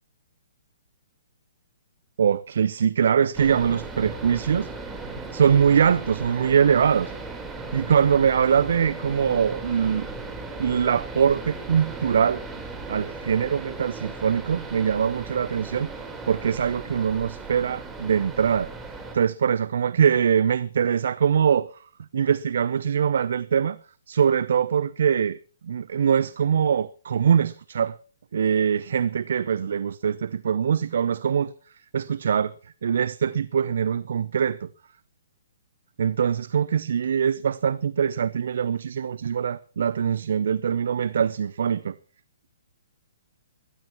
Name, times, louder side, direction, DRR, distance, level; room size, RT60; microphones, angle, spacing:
voice 1, 2.2-4.7 5.3-7.1 7.7-10.1 10.6-12.4 12.9-18.7 19.1-21.7 22.1-23.8 24.1-25.4 25.6-27.9 28.3-31.5 31.9-32.5 32.8-34.7 36.0-41.9, right 7 dB, 65° right, 0.6 m, -23 dB
sound 1, 3.3-19.2, right 3 dB, 10° right, 4.0 m, -37 dB
21.0 x 16.5 x 3.0 m
hypercardioid pair, 130°, 0 cm